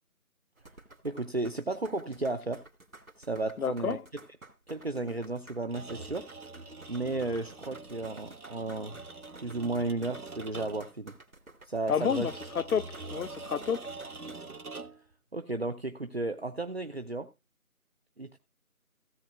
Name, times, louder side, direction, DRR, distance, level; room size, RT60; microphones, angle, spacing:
sound 1, 0.6-14.4, right 2 dB, 70° right, 2.7 m, -53 dB
voice 1, 1.0-2.6 3.2-4.0 4.7-6.3 6.9-9.0 9.4-11.1 11.6-12.3 15.3-17.3 18.2-18.4, right 2 dB, 45° right, 0.8 m, -33 dB
voice 2, 3.6-4.0 11.9-13.9, left 7 dB, 80° left, 0.6 m, -30 dB
sound 2, 5.6-11.0 12.0-15.1, right 3 dB, 90° right, 1.4 m, -44 dB
17.0 x 7.8 x 2.3 m
figure-of-eight pair, 170°, 43 cm